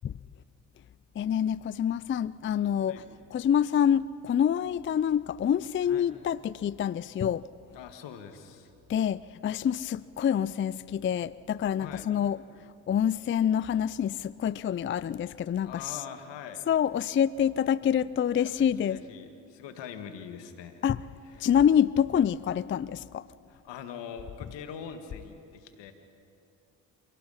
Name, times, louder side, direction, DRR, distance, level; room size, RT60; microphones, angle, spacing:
voice 1, 1.2-3.0 3.3-7.5 8.9-12.4 12.9-16.0 16.7-19.0 20.8-21.0 21.4-23.3, left 9 dB, 30° left, 0.4 m, -26 dB
voice 2, 7.7-8.7 11.8-12.1 15.6-16.6 18.3-20.8 21.3-21.5 23.5-25.9, left 7 dB, 75° left, 1.9 m, -43 dB
28.5 x 17.5 x 5.7 m
hypercardioid pair, 45°, 43 cm